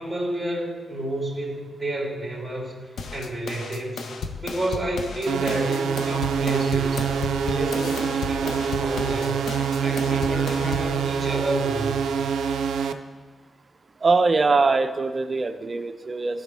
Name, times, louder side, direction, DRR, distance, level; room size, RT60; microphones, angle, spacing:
voice 1, 0.0-2.7 3.1-4.0 4.4-7.1 7.4-9.4 9.8-11.9, right 1 dB, 10° right, -5 dB, 2.8 m, -30 dB
sound 1, 3.0-11.0, left 4 dB, 70° left, 0.6 m, -34 dB
sound 2, 5.3-12.9, right 6 dB, 85° right, 0.4 m, -25 dB
voice 2, 14.0-16.4, right 3 dB, 35° right, 9 dB, 0.5 m, -22 dB
13.0 x 5.2 x 3.4 m, 1.5 s
cardioid pair, 85°, 0 cm